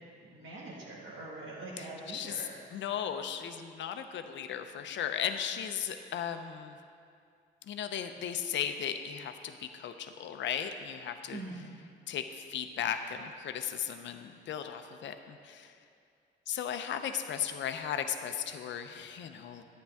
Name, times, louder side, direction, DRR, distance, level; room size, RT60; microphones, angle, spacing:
voice 1, 0.2-2.5 11.3-11.6, right 2 dB, 75° right, -6 dB, 1.8 m, -43 dB
voice 2, 1.8-6.8 7.6-11.4 12.1-15.7 16.5-19.6, left 8 dB, 65° left, 7 dB, 0.7 m, -36 dB
10.0 x 9.2 x 3.5 m, 2.4 s
cardioid pair, 90°, 20 cm